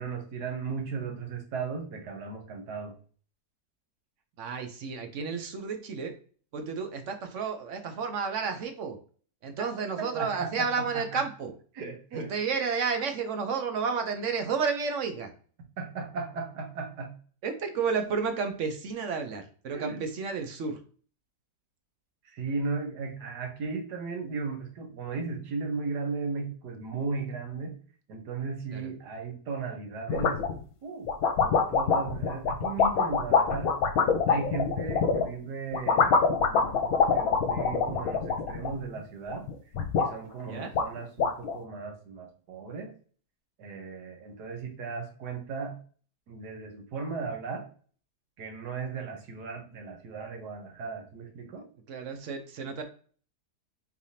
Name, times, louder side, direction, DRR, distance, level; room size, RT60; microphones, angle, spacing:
voice 1, 0.0-2.9 10.0-11.2 11.7-12.3 15.8-17.1 19.7-20.0 22.2-27.8 28.1-30.4 30.8-31.1 31.4-33.7 34.3-36.2 36.5-39.4 39.9-42.9 43.6-45.8 46.3-47.7 48.4-51.7, right 4 dB, 80° right, 3 dB, 1.6 m, -36 dB
voice 2, 4.4-6.1 6.5-9.0 9.4-11.5 12.1-15.3 17.4-20.8 28.7-28.8 40.5-40.7 51.9-52.8, right 5 dB, 60° right, 6 dB, 0.9 m, -31 dB
sound 1, 30.1-30.6 31.1-35.3 35.7-39.0 39.3-40.1 40.5-40.6 40.7-41.6, left 5 dB, 65° left, 1.1 m, -25 dB
4.8 x 3.4 x 2.7 m, 0.42 s
omnidirectional pair, 1.7 m